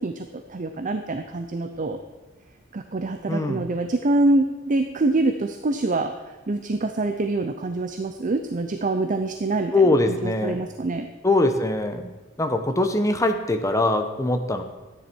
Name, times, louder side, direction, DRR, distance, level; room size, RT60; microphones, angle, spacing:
voice 1, 0.0-2.0 2.7-6.1 6.5-9.7 10.1-11.1, right 2 dB, 40° right, 7 dB, 0.6 m, -25 dB
voice 2, 3.3-3.6 9.7-10.7 11.2-12.1 12.4-14.6, left 2 dB, 15° left, 6 dB, 0.9 m, -22 dB
13.0 x 9.9 x 4.5 m, 1.2 s
head